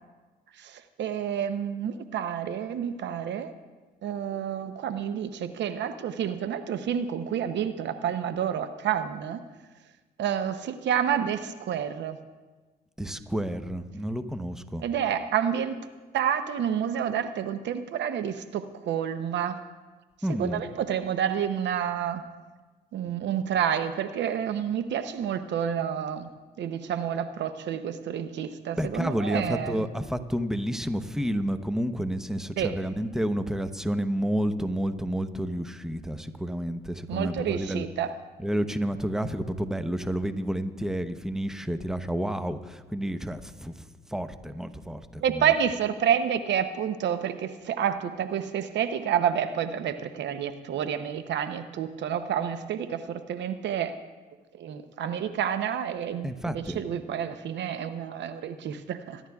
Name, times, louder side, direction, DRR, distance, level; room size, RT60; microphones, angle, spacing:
voice 1, 0.6-3.5 4.0-9.4 10.2-12.2 14.8-15.8 16.1-19.6 20.3-22.2 22.9-26.3 26.6-29.8 32.6-32.8 37.1-38.1 45.2-54.0 54.6-59.2, right 9 dB, 70° right, 10 dB, 0.7 m, -29 dB
voice 2, 13.0-14.8 20.2-20.6 28.7-37.8 38.4-43.7 44.1-45.5 56.2-56.8, equal, 5° right, 10 dB, 0.8 m, -30 dB
23.0 x 11.0 x 2.4 m, 1.3 s
supercardioid pair, 55°, 19 cm